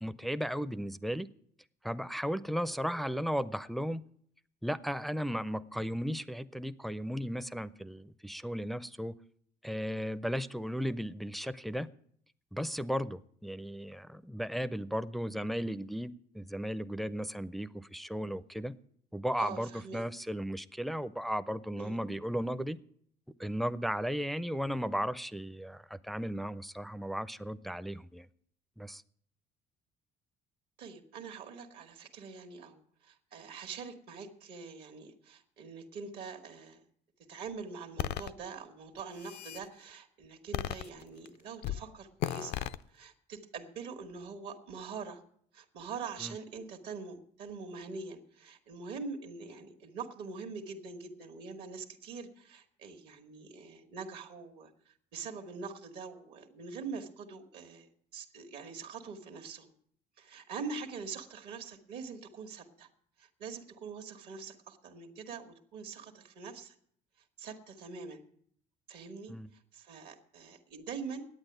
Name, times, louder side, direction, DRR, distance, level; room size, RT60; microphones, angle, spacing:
voice 1, 0.0-1.3 1.8-4.0 4.6-9.1 9.6-11.9 12.5-18.8 19.1-22.8 23.4-28.3 28.8-29.0 46.2-46.4 69.3-69.5, equal, ahead, 14 dB, 0.4 m, -35 dB
voice 2, 19.4-20.0 21.8-22.0 30.8-36.8 37.3-45.2 45.5-59.7 60.2-62.9 63.2-66.7 67.4-68.2 68.9-71.3, right 5 dB, 75° right, 6 dB, 1.5 m, -44 dB
sound 1, 38.0-38.3 39.0-39.6 40.5-41.3 41.6-41.8 42.2-42.8, left 12 dB, 80° left, 0.5 m, -35 dB
9.9 x 8.6 x 9.1 m, 0.64 s
cardioid pair, 110°, 17 cm